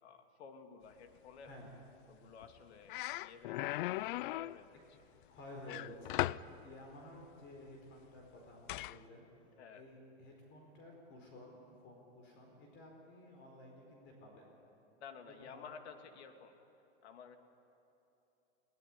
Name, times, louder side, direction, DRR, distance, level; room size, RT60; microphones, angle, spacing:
voice 1, 0.0-1.5 2.1-3.9 4.3-5.0 9.5-9.8 15.0-16.6 17.0-17.4, left 6 dB, 75° left, 6 dB, 2.5 m, -53 dB
sound 1, 2.4-2.6 2.9-4.6 5.7-6.5 8.7-9.0, left 17 dB, 50° left, 0.4 m, -37 dB
voice 2, 5.3-9.3 9.7-14.5 15.4-15.6, left 1 dB, 35° left, 1 dB, 4.6 m, -53 dB
22.0 x 18.0 x 9.9 m, 3.0 s
supercardioid pair, 140°, 33 cm